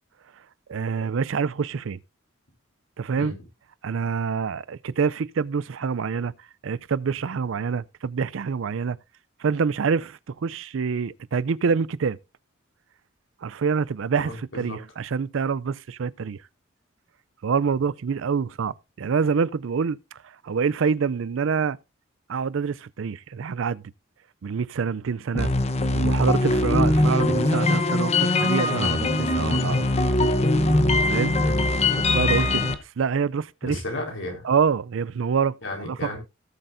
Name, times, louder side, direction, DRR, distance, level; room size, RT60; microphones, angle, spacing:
voice 1, 0.7-2.0 3.0-3.3 3.8-6.3 6.6-9.0 9.4-12.2 13.4-16.4 17.4-21.8 22.3-23.8 24.4-25.5 25.9-29.9 31.0-31.4 32.1-33.8 34.4-36.0, right 6 dB, 80° right, 0.4 m, -26 dB
voice 2, 14.2-14.8 31.4-31.6 33.6-34.5 35.6-36.2, left 1 dB, 75° left, 4.3 m, -33 dB
sound 1, 25.3-32.7, left 2 dB, 35° left, 1.0 m, -21 dB
18.0 x 7.7 x 2.6 m
head